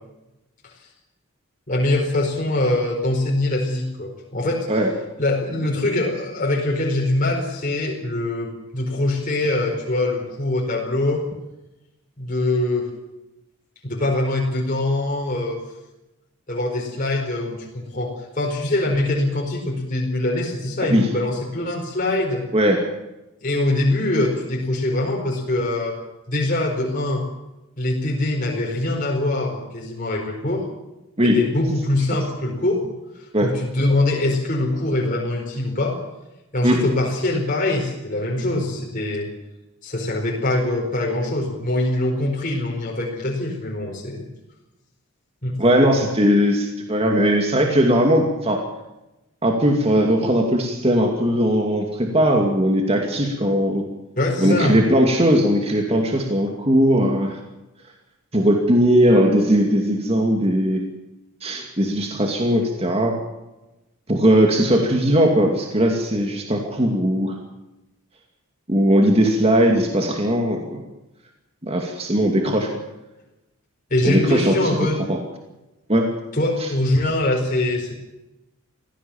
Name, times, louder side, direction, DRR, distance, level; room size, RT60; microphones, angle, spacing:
voice 1, 1.7-4.7 5.2-11.2 12.2-12.9 13.8-15.6 16.5-22.4 23.4-26.0 26.3-27.3 27.8-30.7 31.2-32.9 33.2-36.0 36.5-39.3 39.8-44.3 45.4-45.6 54.2-54.8 73.9-75.0 76.3-78.0, left 1 dB, 40° left, -2 dB, 4.7 m, -23 dB
voice 2, 45.6-48.6 49.4-53.9 54.4-57.4 58.3-60.8 61.4-63.2 64.1-67.4 68.7-70.8 71.6-72.7 74.0-75.2 75.9-76.1 76.6-76.7, equal, 30° right, 2 dB, 2.5 m, -19 dB
24.0 x 16.5 x 7.2 m, 0.97 s
head